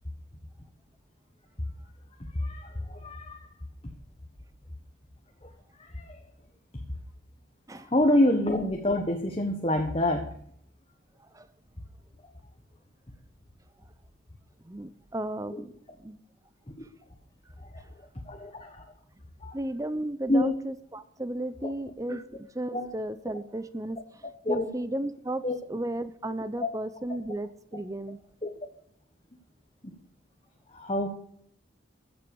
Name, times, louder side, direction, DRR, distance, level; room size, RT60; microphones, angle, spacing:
voice 1, 2.3-3.4 5.4-5.5 5.8-6.2 7.9-10.2 16.7-16.8 18.3-18.8 19.4-19.6 20.3-20.5 22.7-22.9 24.4-24.6 25.4-25.6 28.4-28.5 29.8-29.9 30.7-31.1, left 1 dB, 30° left, 3 dB, 1.3 m, -27 dB
voice 2, 14.6-15.7 16.0-16.2 19.5-28.2, right 1 dB, 15° right, 13 dB, 0.6 m, -35 dB
15.0 x 7.8 x 7.1 m, 0.65 s
head